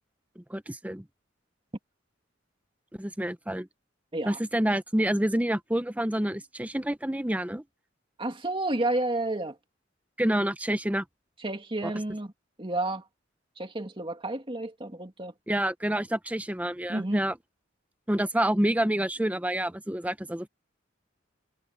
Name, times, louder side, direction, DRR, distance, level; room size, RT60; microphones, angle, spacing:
voice 1, 0.4-1.0 2.9-3.7 4.3-7.6 10.2-11.0 11.8-11.9 15.5-17.4 18.1-20.5, right 1 dB, 5° right, 0.8 m, -28 dB
voice 2, 8.2-9.6 11.4-12.3 12.6-13.0 13.6-15.3 16.9-17.2, right 2 dB, 25° right, 2.1 m, -31 dB
head